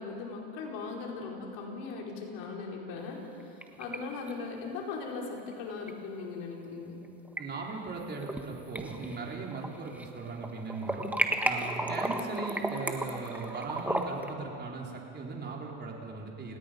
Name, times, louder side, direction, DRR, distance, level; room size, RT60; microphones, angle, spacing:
voice 1, 0.0-3.2 3.8-7.0, left 4 dB, 60° left, -1 dB, 4.8 m, -39 dB
sound 1, 3.3-4.0 4.3-4.4 5.9-6.0 7.0-7.4 7.9-8.4 8.8-10.1 10.4-14.3, right 1 dB, 5° right, 1.5 m, -33 dB
voice 2, 7.4-16.6, right 4 dB, 25° right, -1 dB, 4.2 m, -38 dB
29.5 x 17.0 x 5.3 m, 2.7 s
supercardioid pair, 110°, 39 cm